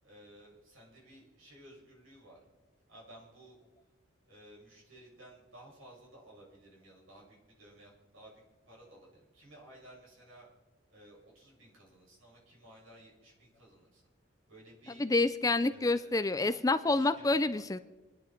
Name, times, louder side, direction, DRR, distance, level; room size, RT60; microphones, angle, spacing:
voice 1, 0.0-2.4 2.9-3.6 4.2-10.5 10.9-14.1 14.5-15.1 15.7-16.6 16.9-17.6, right 1 dB, 85° right, -3 dB, 7.0 m, -56 dB
voice 2, 15.0-17.8, left 2 dB, 15° left, 12 dB, 0.5 m, -28 dB
27.5 x 10.5 x 4.5 m, 1.2 s
head